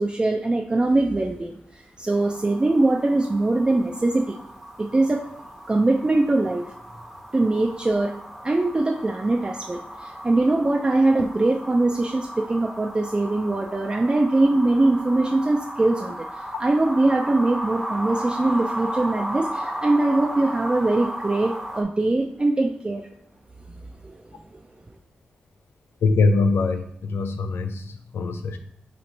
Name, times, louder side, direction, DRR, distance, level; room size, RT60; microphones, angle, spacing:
voice 1, 0.0-4.3 4.8-5.2 5.7-6.6 7.3-8.1 8.4-23.1 24.0-24.2, right 2 dB, 25° right, 1 dB, 0.3 m, -22 dB
sound 1, 2.1-21.8, equal, ahead, 0.7 m, -35 dB
voice 2, 26.0-27.8 28.1-28.6, left 3 dB, 85° left, 7 dB, 0.4 m, -22 dB
3.0 x 2.5 x 4.0 m, 0.71 s
cardioid pair, 45°, 4 cm